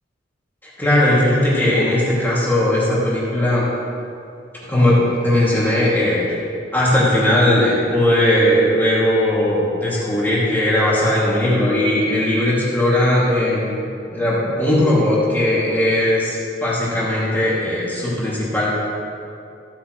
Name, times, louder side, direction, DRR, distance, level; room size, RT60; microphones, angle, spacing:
voice 1, 0.8-3.7 4.7-6.2 6.7-13.8 14.1-18.8, left 1 dB, 10° left, -8 dB, 2.4 m, -18 dB
14.5 x 9.2 x 3.2 m, 2.6 s
head